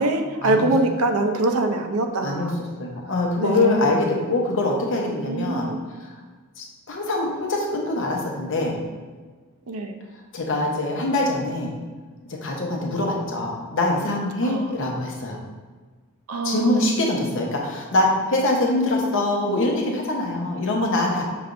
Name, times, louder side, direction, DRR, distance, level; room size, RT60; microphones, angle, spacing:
voice 1, 0.0-2.6 3.4-4.1 5.2-5.8 9.7-9.9 14.4-14.7 16.3-16.9, right 2 dB, 80° right, 5 dB, 0.5 m, -24 dB
voice 2, 2.8-5.7 6.0-6.1 6.6-8.8 10.3-11.7 12.3-15.4 16.4-21.2, left 2 dB, 60° left, 0 dB, 0.8 m, -24 dB
5.7 x 3.3 x 2.5 m, 1.4 s
head